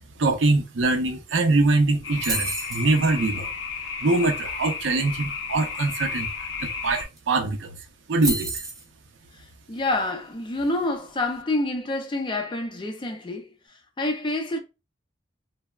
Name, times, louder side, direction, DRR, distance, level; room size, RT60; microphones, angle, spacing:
voice 1, 0.2-3.5 4.0-6.3 6.6-7.7 8.1-8.6, right 3 dB, 85° right, 0.5 m, -23 dB
sound 1, 2.0-7.0, left 5 dB, 85° left, 0.5 m, -33 dB
sound 2, 2.2-2.9 6.8-6.9 7.2-7.5 8.2-8.8, right 2 dB, 20° right, 0.7 m, -29 dB
voice 2, 9.7-13.5 14.0-14.6, left 2 dB, 25° left, 0.4 m, -27 dB
3.2 x 2.0 x 2.2 m
head